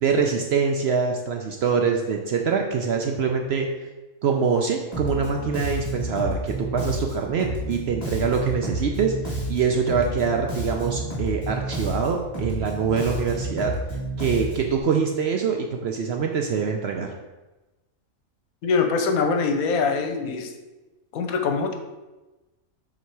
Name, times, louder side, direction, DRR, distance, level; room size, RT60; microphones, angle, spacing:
voice 1, 0.0-3.7 4.2-13.7 14.2-17.1, right 5 dB, 65° right, 2 dB, 0.7 m, -24 dB
Bass guitar, 4.9-14.8, right 1 dB, 30° left, 1.5 m, -30 dB
voice 2, 18.6-20.5 21.1-21.7, left 4 dB, 80° left, 5 dB, 1.1 m, -23 dB
7.0 x 3.0 x 4.6 m, 1.1 s
omnidirectional pair, 1.5 m